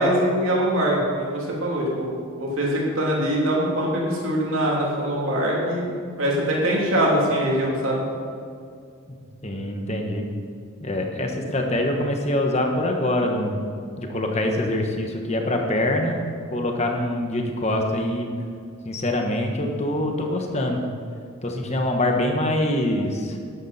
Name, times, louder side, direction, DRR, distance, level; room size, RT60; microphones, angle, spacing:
voice 1, 0.0-5.8 6.2-8.0, equal, 65° right, -3 dB, 2.9 m, -23 dB
voice 2, 9.4-10.2 10.8-13.7 14.0-16.2 16.5-18.3 18.8-20.9 21.4-23.4, left 1 dB, 30° left, 2 dB, 1.3 m, -24 dB
12.5 x 11.0 x 4.3 m, 2.3 s
head